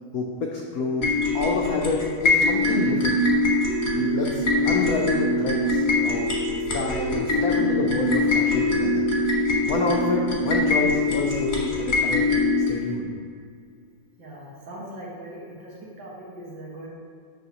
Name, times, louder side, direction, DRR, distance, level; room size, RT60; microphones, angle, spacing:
voice 1, 0.1-3.3 3.9-6.3 6.7-9.0 9.6-12.3 12.7-13.1, left 3 dB, 85° left, 0 dB, 0.8 m, -28 dB
sound 1, 1.0-12.7, left 2 dB, 30° left, 1.1 m, -23 dB
voice 2, 14.2-16.9, right 1 dB, 65° right, -5 dB, 2.1 m, -40 dB
7.5 x 6.2 x 2.9 m, 2.2 s
omnidirectional pair, 2.2 m